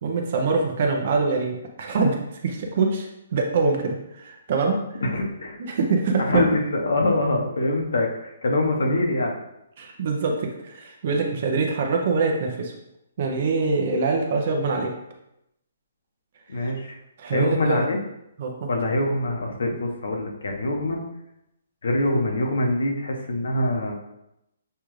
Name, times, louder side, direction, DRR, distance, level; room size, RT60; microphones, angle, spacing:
voice 1, 0.0-2.2 2.4-4.8 5.6-6.4 9.8-12.7 13.2-14.9 16.6-16.7 17.2-17.9 18.4-18.7, right 4 dB, 45° right, 2 dB, 0.6 m, -24 dB
voice 2, 5.0-5.6 6.2-9.4 16.5-17.0 17.3-18.0 18.7-21.0 21.8-23.9, left 1 dB, 80° left, 1 dB, 1.0 m, -24 dB
6.7 x 2.4 x 3.1 m, 0.84 s
hypercardioid pair, 165°, 0 cm